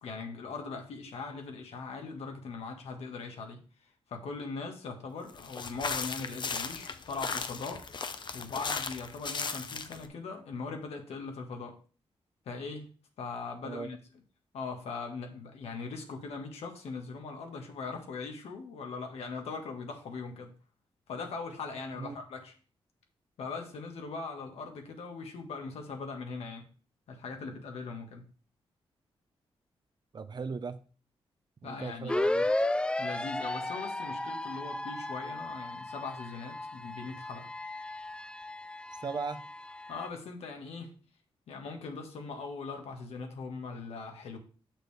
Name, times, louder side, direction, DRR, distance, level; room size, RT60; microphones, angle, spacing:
voice 1, 0.0-7.9 8.3-11.8 12.4-12.9 13.2-14.0 14.5-20.5 21.1-22.5 23.4-26.7 27.1-28.2 31.6-32.1 33.0-37.5 39.9-40.9 41.5-44.4, left 4 dB, 85° left, 1.4 m, -40 dB
sound 1, 5.3-10.1, left 5 dB, 50° left, 0.7 m, -36 dB
voice 2, 30.1-30.8 31.6-32.5 39.0-39.4, right 5 dB, 45° right, 0.7 m, -37 dB
sound 2, 32.1-40.1, left 1 dB, 10° left, 0.3 m, -34 dB
6.5 x 6.2 x 3.3 m
cardioid pair, 80°, 10 cm